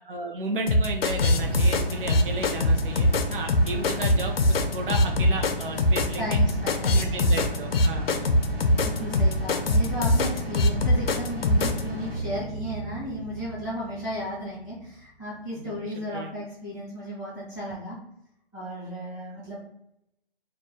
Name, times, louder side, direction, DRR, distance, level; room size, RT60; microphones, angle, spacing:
voice 1, 0.1-6.4 6.9-8.3 16.1-16.3, right 2 dB, 60° right, 2 dB, 0.5 m, -33 dB
sound 1, 0.7-11.8, left 1 dB, 75° left, 0.5 m, -22 dB
sound 2, 1.0-15.0, equal, 85° right, 1.0 m, -35 dB
voice 2, 6.2-7.3 8.7-18.0 18.5-19.6, equal, 20° left, -11 dB, 0.5 m, -34 dB
2.2 x 2.0 x 2.8 m, 0.81 s
hypercardioid pair, 175°, 30 cm